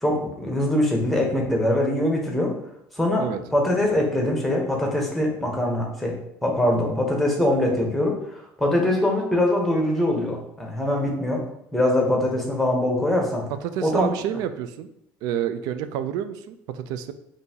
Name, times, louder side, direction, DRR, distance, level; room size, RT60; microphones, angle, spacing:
voice 1, 0.0-2.5 2.9-11.4 11.7-13.4 13.8-14.1, left 1 dB, ahead, -1 dB, 0.9 m, -23 dB
voice 2, 13.6-14.9 15.2-17.1, right 9 dB, 75° right, 11 dB, 0.4 m, -29 dB
5.3 x 2.6 x 2.8 m, 0.75 s
cardioid pair, 140°, 7 cm